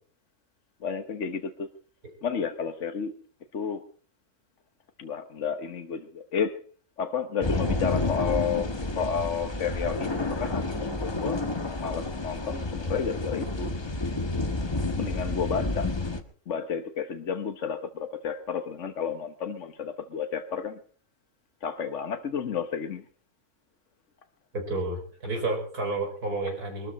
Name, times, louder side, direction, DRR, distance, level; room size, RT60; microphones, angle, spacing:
voice 1, 0.8-1.7 2.2-3.1 3.5-3.8 5.0-6.6 7.0-8.7 9.0-11.4 11.8-13.7 14.9-15.9 16.5-20.8 21.6-23.0, left 7 dB, 55° left, 7 dB, 1.3 m, -31 dB
sound 1, 7.4-16.2, left 2 dB, 20° left, 1.2 m, -30 dB
voice 2, 24.5-26.9, right 2 dB, 75° right, 3 dB, 5.1 m, -30 dB
23.0 x 13.5 x 4.2 m, 0.43 s
omnidirectional pair, 1.7 m